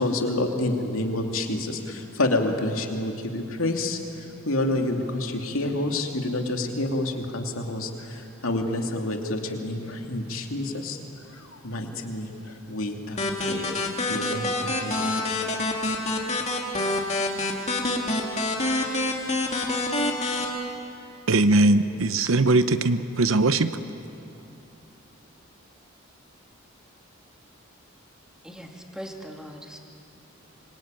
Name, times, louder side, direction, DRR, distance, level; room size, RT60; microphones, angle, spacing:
voice 1, 0.0-11.0 11.3-15.2, left 2 dB, 80° left, 2 dB, 2.7 m, -28 dB
sound 1, 13.2-20.4, left 2 dB, 30° left, 2.6 m, -27 dB
voice 2, 21.3-23.7, right 2 dB, 75° right, 11 dB, 0.8 m, -20 dB
voice 3, 28.4-29.8, equal, 5° right, 1 dB, 2.3 m, -40 dB
26.0 x 24.0 x 9.2 m, 2.8 s
head